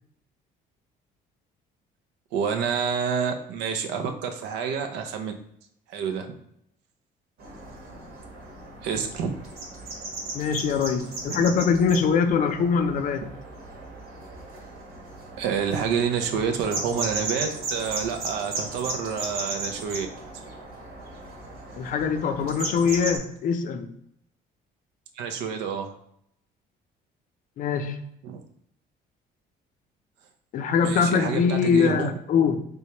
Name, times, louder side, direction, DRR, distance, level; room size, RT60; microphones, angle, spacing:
voice 1, 2.3-5.3 5.9-6.4 8.8-9.3 11.3-11.5 15.4-20.1 25.2-25.9 28.2-28.4 30.8-32.1, right 6 dB, 85° right, 6 dB, 0.5 m, -28 dB
sound 1, 7.4-23.2, right 2 dB, 70° right, 1.3 m, -36 dB
voice 2, 10.3-13.3 21.8-23.9 27.6-28.0 30.5-32.7, left 6 dB, 50° left, 8 dB, 0.4 m, -23 dB
3.4 x 3.1 x 2.9 m, 0.73 s
cardioid pair, 110°, 17 cm